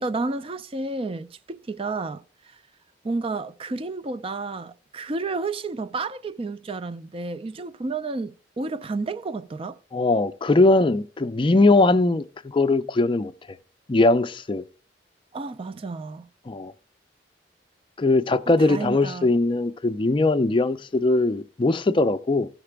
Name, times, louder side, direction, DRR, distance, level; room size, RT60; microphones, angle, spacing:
voice 1, 0.0-2.2 3.0-9.8 15.3-16.3 18.6-19.3, right 3 dB, 30° right, 0.4 m, -31 dB
voice 2, 9.9-13.3 13.9-14.6 16.5-16.7 18.0-22.5, left 2 dB, 25° left, 0.4 m, -20 dB
16.0 x 5.9 x 3.4 m
head